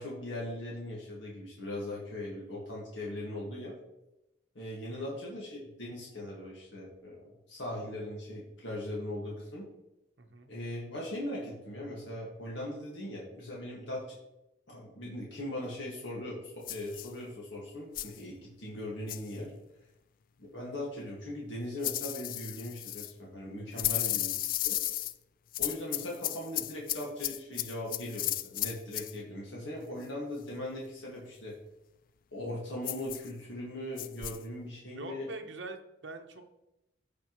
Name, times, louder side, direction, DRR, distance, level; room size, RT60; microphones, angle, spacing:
voice 1, 0.0-3.8 4.6-9.7 10.5-14.2 14.7-19.5 20.4-24.4 24.6-24.8 25.6-31.6 32.3-35.3, left 1 dB, 75° left, -4 dB, 1.9 m, -39 dB
voice 2, 10.2-10.5 23.7-24.1 29.8-29.9 34.9-36.5, right 3 dB, 70° right, 5 dB, 1.0 m, -44 dB
sound 1, 16.7-17.1 18.0-18.2 19.1-19.3 21.8-23.1 23.8-25.1 25.5-29.1 32.8-33.3 34.0-34.4, left 14 dB, 45° left, 0.3 m, -34 dB
15.0 x 5.1 x 3.1 m, 0.91 s
head